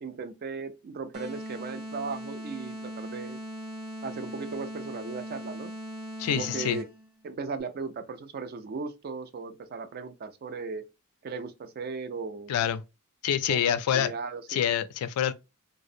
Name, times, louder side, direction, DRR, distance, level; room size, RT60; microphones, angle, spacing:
voice 1, 0.0-3.4 4.0-5.7 6.3-6.8 7.2-10.8 11.2-12.5 13.5-14.6, right 4 dB, 45° right, 0.3 m, -37 dB
sound 1, 1.1-7.1, right 1 dB, 80° right, 0.9 m, -39 dB
voice 2, 6.2-6.8 12.5-12.8 13.2-14.1 14.5-15.3, left 9 dB, 85° left, 0.3 m, -26 dB
2.6 x 2.0 x 2.5 m
head